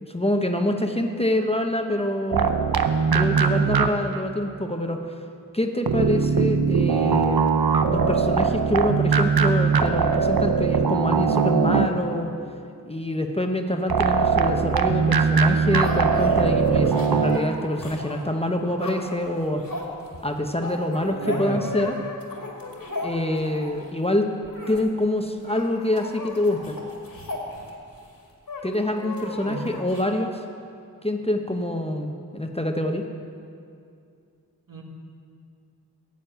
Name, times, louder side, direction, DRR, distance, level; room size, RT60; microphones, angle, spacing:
voice 1, 0.0-2.5 3.1-5.0 5.5-7.4 7.9-12.3 12.9-19.6 20.2-22.0 23.0-24.3 24.7-26.8 28.6-30.4 31.0-33.0, left 1 dB, 15° left, 4 dB, 0.8 m, -26 dB
sound 1, 2.3-4.2 5.9-12.2 13.9-17.4, right 5 dB, 80° right, 0.7 m, -21 dB
sound 2, 15.4-23.9 24.4-24.8 25.1-25.2 25.4-28.0 28.5-30.0, left 2 dB, 70° left, 2.1 m, -36 dB
voice 2, 21.0-21.6 29.4-29.7 34.7-34.8, right 2 dB, 65° right, -1 dB, 1.9 m, -32 dB
10.5 x 7.3 x 9.0 m, 2.4 s
wide cardioid pair, 40°, 35 cm